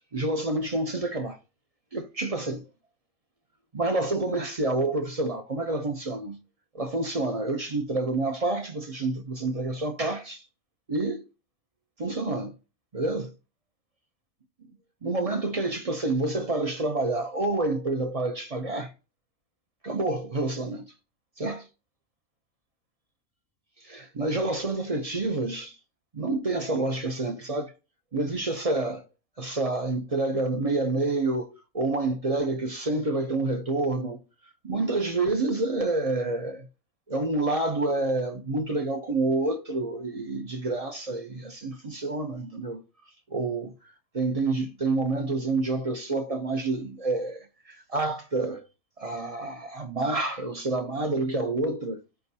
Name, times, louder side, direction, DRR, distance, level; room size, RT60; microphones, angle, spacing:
voice 1, 0.1-1.4 1.9-2.6 3.7-6.4 6.7-10.4 10.9-11.2 12.0-12.5 12.9-13.3 15.0-18.9 19.8-20.9 21.4-21.7 23.8-25.8 26.1-27.7 28.1-29.0 29.4-34.2 34.6-36.7 37.1-42.8 43.3-43.7 44.1-48.6 49.0-52.0, right 2 dB, 35° right, 0.6 m, -28 dB
15.0 x 5.3 x 2.7 m
omnidirectional pair, 1.5 m